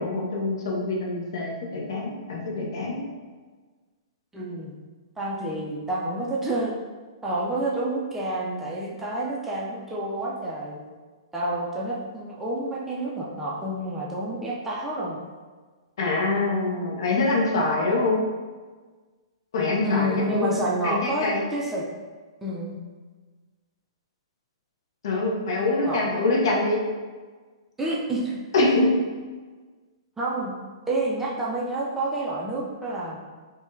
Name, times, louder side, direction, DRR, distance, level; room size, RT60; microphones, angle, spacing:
voice 1, 0.0-3.0 16.0-18.2 19.5-20.6 20.8-21.4 25.0-26.8 28.5-28.9, left 2 dB, 55° left, -2 dB, 0.7 m, -24 dB
voice 2, 4.3-4.8 5.2-6.7 7.2-10.8 11.3-15.2 19.8-21.9 22.4-22.8 25.8-26.2 27.8-28.4 30.2-30.5 30.9-33.2, right 1 dB, 10° right, -5 dB, 0.4 m, -29 dB
3.4 x 2.2 x 2.6 m, 1.4 s
figure-of-eight pair, 115°, 3 cm